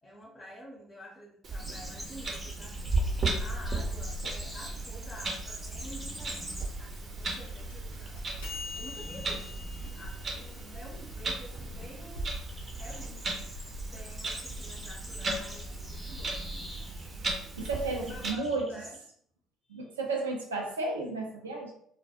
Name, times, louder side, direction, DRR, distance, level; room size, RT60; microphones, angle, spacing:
voice 1, 0.0-6.5 6.8-8.2 8.7-9.6 9.9-12.3 12.8-13.4 13.9-16.4 18.0-18.4 18.7-19.0 19.6-19.9, equal, 25° left, -2 dB, 0.6 m, -49 dB
Clock, 1.4-18.3, right 2 dB, 45° right, 0.6 m, -36 dB
sound 1, 1.6-7.0 7.2-7.6 7.9-19.0, right 1 dB, 10° right, 0.8 m, -46 dB
sound 2, 4.1-12.2, left 4 dB, 85° left, 0.5 m, -47 dB
voice 2, 17.6-18.7 19.7-21.7, right 3 dB, 90° right, 1 dB, 0.4 m, -33 dB
2.2 x 2.0 x 2.7 m, 0.64 s
hypercardioid pair, 50°, 0 cm